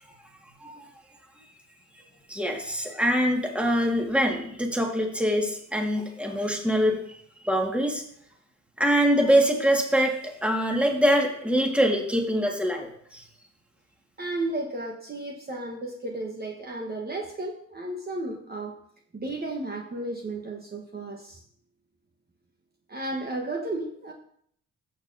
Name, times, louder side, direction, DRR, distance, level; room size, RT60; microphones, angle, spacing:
voice 1, 2.3-8.0 8.8-13.2, equal, 5° right, 1 dB, 1.8 m, -24 dB
voice 2, 14.2-18.8 19.1-21.4 22.9-24.1, right 2 dB, 30° right, 1 dB, 1.2 m, -33 dB
15.0 x 6.7 x 2.7 m, 0.66 s
cardioid pair, 90°, 30 cm